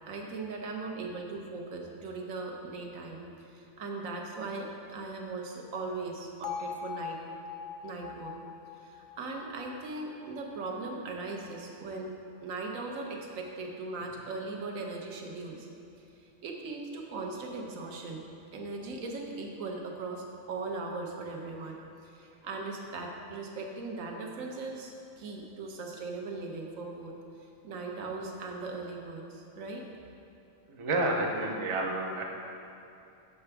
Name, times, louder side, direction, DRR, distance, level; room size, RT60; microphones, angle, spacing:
voice 1, 0.1-7.2 7.8-8.3 8.8-12.1 12.4-15.7 16.2-18.2 18.5-27.2 27.6-29.8, right 3 dB, 75° right, 1 dB, 1.1 m, -39 dB
Bell, 6.4-10.5, left 6 dB, 85° left, 0.4 m, -41 dB
voice 2, 30.7-32.2, right 2 dB, 45° right, 0 dB, 0.4 m, -30 dB
6.7 x 5.8 x 3.4 m, 2.6 s
omnidirectional pair, 1.4 m